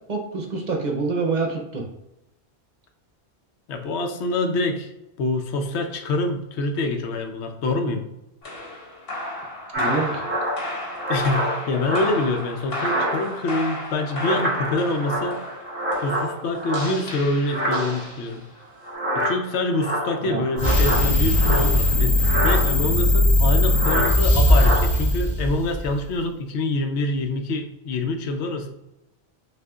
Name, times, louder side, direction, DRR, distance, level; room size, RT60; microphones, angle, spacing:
voice 1, 0.1-1.8 9.8-10.2 20.2-20.4, right 4 dB, 50° right, 1 dB, 0.7 m, -26 dB
voice 2, 3.7-4.9 5.2-8.1 11.1-15.4 16.0-18.4 19.1-22.2 22.4-28.7, left 2 dB, 90° left, 5 dB, 0.9 m, -26 dB
sound 1, 8.4-18.6, left 1 dB, 65° left, 1.3 m, -34 dB
sound 2, 9.7-12.3 12.7-13.5 13.8-17.1 17.4-18.1 18.8-21.9 22.2-22.6 23.7-24.1 24.4-24.8, equal, 10° right, 0.9 m, -27 dB
sound 3, 20.6-26.0, equal, 40° left, 1.0 m, -19 dB
6.2 x 2.5 x 2.3 m, 0.90 s
omnidirectional pair, 1.1 m